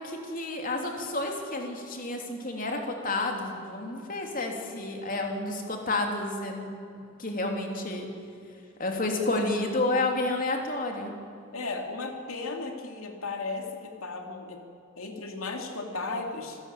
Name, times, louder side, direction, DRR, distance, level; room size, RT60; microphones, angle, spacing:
voice 1, 0.0-6.7 6.9-8.1 8.8-11.1, left 2 dB, 40° left, 2 dB, 3.2 m, -30 dB
voice 2, 11.5-14.7 15.0-16.6, left 3 dB, 85° left, 3 dB, 2.8 m, -35 dB
26.5 x 15.0 x 8.8 m, 2.5 s
head